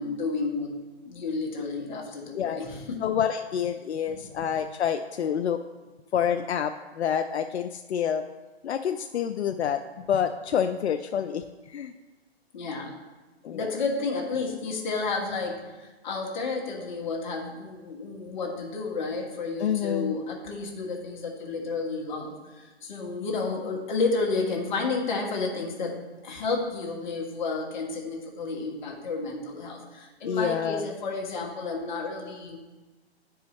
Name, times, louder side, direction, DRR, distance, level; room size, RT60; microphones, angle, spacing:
voice 1, 0.0-3.0 4.1-4.3 12.5-13.0 13.5-32.6, left 3 dB, 45° left, -1 dB, 1.6 m, -31 dB
voice 2, 1.9-2.6 3.0-5.6 6.1-8.2 8.6-11.9 13.4-13.7 19.6-20.2 30.3-30.9, left 8 dB, 85° left, 7 dB, 0.5 m, -28 dB
10.0 x 4.7 x 3.1 m, 1.2 s
hypercardioid pair, 145°, 32 cm